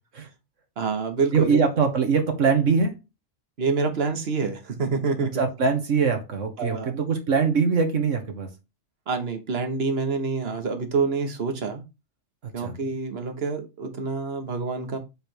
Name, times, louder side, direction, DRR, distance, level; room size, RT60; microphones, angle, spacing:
voice 1, 0.8-1.6 3.6-5.3 6.6-6.9 9.1-11.8 12.5-15.0, right 4 dB, 50° right, 6 dB, 1.5 m, -27 dB
voice 2, 1.3-2.9 5.2-8.5 12.6-12.7, right 5 dB, 70° right, 5 dB, 1.8 m, -22 dB
7.5 x 3.4 x 4.5 m, 0.25 s
omnidirectional pair, 1.3 m